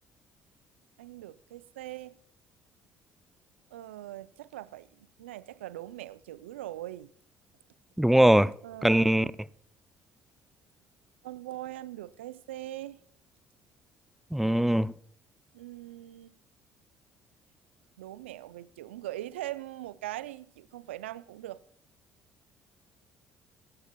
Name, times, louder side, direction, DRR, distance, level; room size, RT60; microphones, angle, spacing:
voice 1, 1.0-2.2 3.7-7.1 8.6-9.3 11.2-13.0 15.5-16.3 18.0-21.6, right 15 dB, 85° right, 0.4 m, -41 dB
voice 2, 8.0-8.5 8.8-9.3 14.3-14.9, right 1 dB, 5° right, 0.4 m, -21 dB
24.0 x 14.5 x 2.3 m
hypercardioid pair, 55°, 6 cm